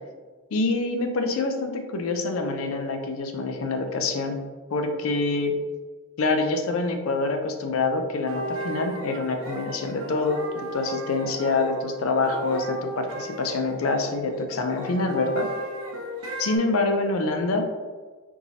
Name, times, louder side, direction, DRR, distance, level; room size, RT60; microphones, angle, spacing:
voice 1, 0.5-4.4 4.7-5.6 6.2-10.4 10.7-15.5 16.4-17.7, left 3 dB, 80° left, 5 dB, 0.5 m, -26 dB
sound 1, 8.3-16.6, right 1 dB, 90° right, 0.9 m, -35 dB
4.6 x 2.7 x 2.7 m, 1.4 s
head